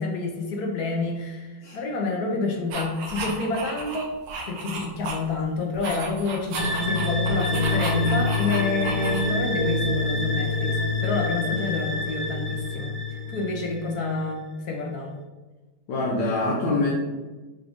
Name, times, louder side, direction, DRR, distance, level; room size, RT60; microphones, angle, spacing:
voice 1, 0.0-4.2 4.5-15.2, left 3 dB, 65° left, 1 dB, 1.1 m, -29 dB
sound 1, 2.7-5.4 5.7-9.5, right 3 dB, 75° right, 1.5 m, -34 dB
sound 2, 6.6-14.1, left 3 dB, 45° left, 0.6 m, -26 dB
sound 3, 7.5-13.4, right 4 dB, 50° right, 0.8 m, -36 dB
voice 2, 15.9-16.9, left 2 dB, 85° left, -5 dB, 1.6 m, -24 dB
5.9 x 2.5 x 3.5 m, 1.2 s
omnidirectional pair, 2.0 m